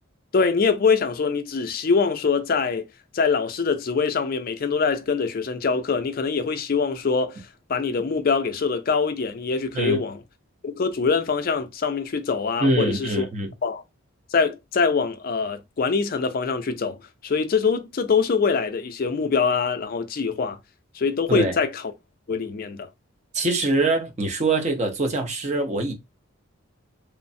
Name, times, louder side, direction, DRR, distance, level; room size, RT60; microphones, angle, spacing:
voice 1, 0.3-2.9 3.1-10.2 10.6-13.3 13.6-13.8 14.3-20.6 20.9-21.8 22.3-22.9, left 5 dB, 45° left, 0.4 m, -24 dB
voice 2, 12.6-13.5 21.3-21.6 23.3-25.9, right 2 dB, 35° right, 0.5 m, -23 dB
3.1 x 2.1 x 2.6 m
head